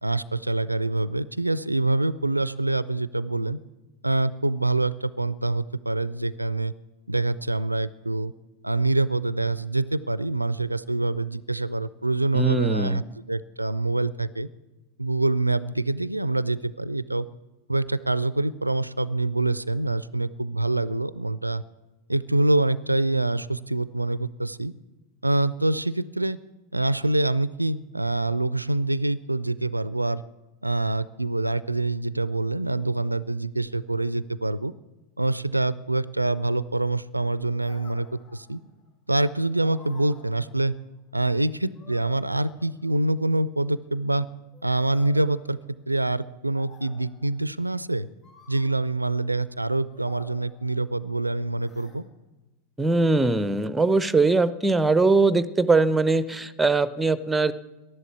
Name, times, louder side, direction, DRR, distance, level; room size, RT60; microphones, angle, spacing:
voice 1, 0.0-3.6 4.0-6.7 7.1-8.3 8.6-13.0 13.3-14.5 15.0-17.3 17.7-21.6 22.1-24.7 25.2-26.4 26.7-30.2 30.6-34.7 35.2-38.6 39.1-40.7 41.1-44.3 44.6-45.6 45.9-48.1 48.5-52.1, right 2 dB, 85° right, 19 dB, 0.4 m, -25 dB
voice 2, 12.3-13.0 52.8-57.5, right 3 dB, 10° right, 17 dB, 0.6 m, -21 dB
sound 1, 37.6-38.8 39.5-41.0 41.7-43.2 44.5-46.1 46.5-47.5 48.2-49.1 49.9-51.1 51.6-52.0, left 4 dB, 35° left, 4.6 m, -52 dB
12.0 x 11.0 x 8.2 m, 1.1 s
figure-of-eight pair, 90°, 0 cm